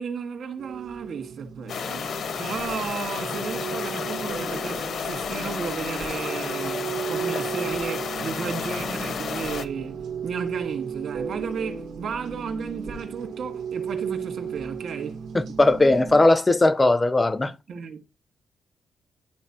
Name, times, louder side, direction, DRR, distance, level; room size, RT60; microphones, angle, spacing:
voice 1, 0.0-2.0 2.4-6.8 7.1-15.2 17.7-18.0, right 6 dB, 65° right, 1.6 m, -34 dB
sound 1, 0.6-16.2, right 7 dB, 85° right, 1.1 m, -35 dB
sound 2, 1.7-9.7, left 6 dB, 60° left, 0.6 m, -31 dB
voice 2, 15.3-17.5, left 2 dB, 15° left, 0.4 m, -18 dB
11.5 x 4.1 x 2.8 m
wide cardioid pair, 155°, 0 cm